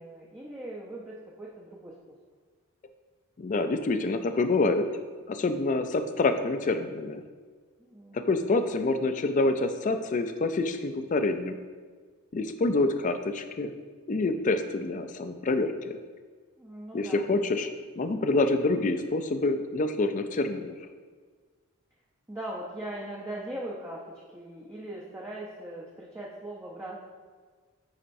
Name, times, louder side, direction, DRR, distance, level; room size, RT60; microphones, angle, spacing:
voice 1, 0.0-2.0 7.8-8.4 16.6-17.3 22.3-27.0, right 1 dB, 10° right, -5 dB, 0.6 m, -40 dB
voice 2, 3.4-4.9 5.3-7.2 8.1-11.6 12.3-13.7 14.1-16.0 16.9-17.7 18.0-20.7, left 3 dB, 35° left, 8 dB, 0.4 m, -27 dB
9.9 x 4.2 x 2.6 m, 1.5 s
head